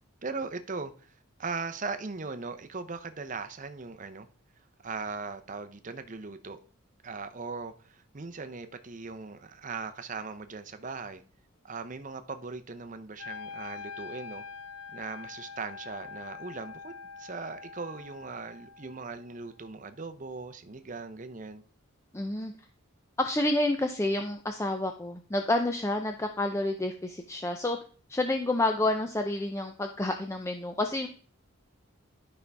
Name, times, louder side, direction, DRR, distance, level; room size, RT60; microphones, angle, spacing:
voice 1, 0.2-1.1 1.4-4.3 4.8-6.6 7.0-11.2 11.6-14.4 14.9-16.9 17.2-21.6, right 4 dB, 35° right, 0.6 m, -39 dB
Wind instrument woodwind instrument, 13.2-19.3, left 5 dB, 70° left, 0.9 m, -44 dB
voice 2, 22.1-22.5 23.2-27.8 28.1-31.1, left 2 dB, 15° left, 0.5 m, -29 dB
12.5 x 5.4 x 3.5 m
head